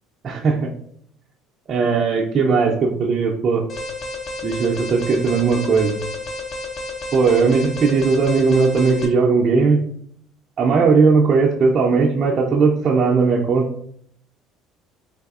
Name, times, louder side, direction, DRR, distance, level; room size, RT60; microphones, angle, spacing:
voice 1, 0.2-0.7 1.7-3.6 4.4-6.0 7.1-9.8 10.6-13.7, right 4 dB, 45° right, -3 dB, 0.5 m, -18 dB
Alarm, 3.7-9.1, left 2 dB, 45° left, 0.7 m, -31 dB
4.1 x 2.6 x 2.4 m, 0.67 s
hypercardioid pair, 65°, 0 cm